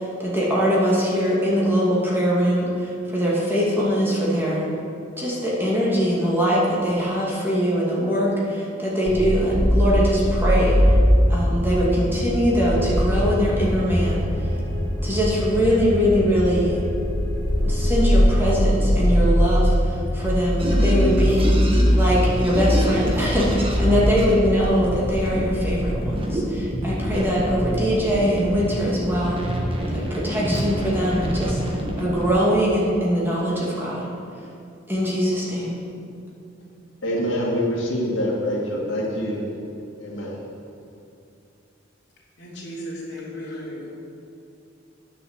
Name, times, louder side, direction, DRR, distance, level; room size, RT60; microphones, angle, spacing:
voice 1, 0.2-2.7 3.1-4.7 5.2-10.8 11.3-14.2 15.0-16.8 17.6-19.7 20.1-21.6 21.9-29.4 30.1-31.6 32.0-34.0 34.9-35.8, equal, 10° right, -6 dB, 2.3 m, -22 dB
sound 1, 9.1-25.8, equal, 25° left, 1.0 m, -21 dB
sound 2, 12.5-18.5, left 5 dB, 80° right, 3.2 m, -37 dB
sound 3, 20.6-32.3, equal, 30° right, 1.4 m, -27 dB
voice 2, 37.0-39.4 40.0-40.4, equal, 80° left, -4 dB, 2.3 m, -25 dB
voice 3, 42.4-43.9, equal, 60° left, -5 dB, 3.2 m, -35 dB
9.9 x 7.1 x 7.3 m, 2.6 s
head